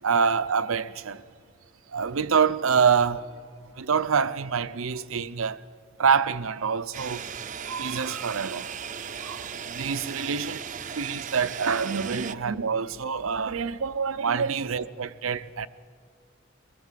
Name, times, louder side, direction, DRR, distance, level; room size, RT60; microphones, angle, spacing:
voice 1, 0.0-1.2 1.9-3.3 3.8-5.6 6.0-7.2 7.7-8.7 9.2-15.7, right 6 dB, 90° right, 0.6 m, -26 dB
sound 1, 6.9-12.4, right 7 dB, 40° right, 0.5 m, -37 dB
23.5 x 20.5 x 7.5 m
head